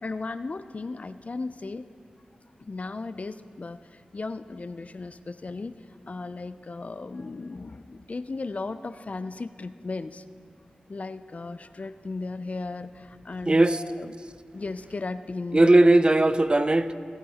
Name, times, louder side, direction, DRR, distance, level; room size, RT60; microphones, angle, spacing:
voice 1, 0.0-1.9 2.6-5.8 6.1-10.2 10.9-14.1 14.5-15.7, left 3 dB, 50° left, 13 dB, 0.4 m, -36 dB
voice 2, 13.5-13.8 15.5-16.9, right 2 dB, 30° right, 12 dB, 0.6 m, -18 dB
23.5 x 9.4 x 2.9 m, 2.2 s
cardioid pair, 40°, 3 cm